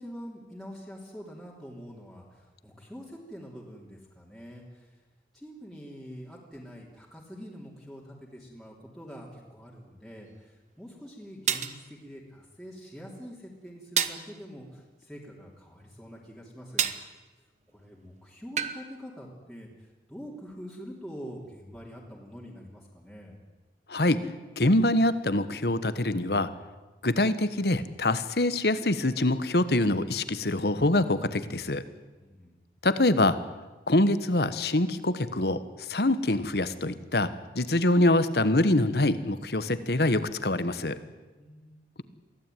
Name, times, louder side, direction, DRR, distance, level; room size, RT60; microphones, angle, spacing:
voice 1, 0.0-5.0 5.3-16.9 17.7-23.4 32.2-32.6 41.4-41.8, equal, ahead, -5 dB, 3.0 m, -45 dB
sound 1, 10.4-10.5 11.5-11.8 14.0-14.3 16.8-17.1 18.6-18.8, right 8 dB, 40° right, 1.1 m, -28 dB
voice 2, 23.9-24.3 24.6-26.5 27.0-31.8 32.8-33.4 33.9-41.0, left 1 dB, 65° left, 13 dB, 1.3 m, -25 dB
23.5 x 16.0 x 9.3 m, 1.2 s
head